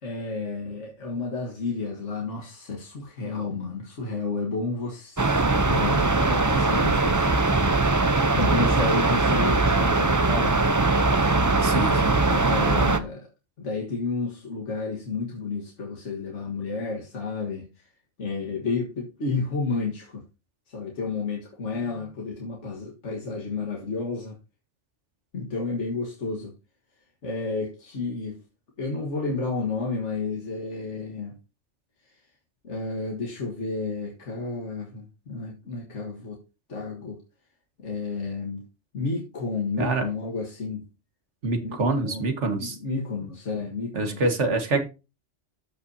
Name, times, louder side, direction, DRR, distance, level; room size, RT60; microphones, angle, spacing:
voice 1, 0.0-7.7 8.3-10.6 11.9-13.3 13.6-17.7 18.2-20.2 20.7-24.4 25.3-26.5 27.2-28.4 28.8-31.4 32.6-36.4 36.7-37.2 37.8-38.6 38.9-40.8 41.6-41.8 42.0-44.2, left 3 dB, 80° left, 1.9 m, -31 dB
sound 1, 5.2-13.0, right 3 dB, 25° right, 0.5 m, -21 dB
voice 2, 11.6-12.2 39.8-40.1 41.4-42.8 43.9-44.8, right 2 dB, 80° right, 1.9 m, -25 dB
14.0 x 5.6 x 2.7 m
omnidirectional pair, 1.2 m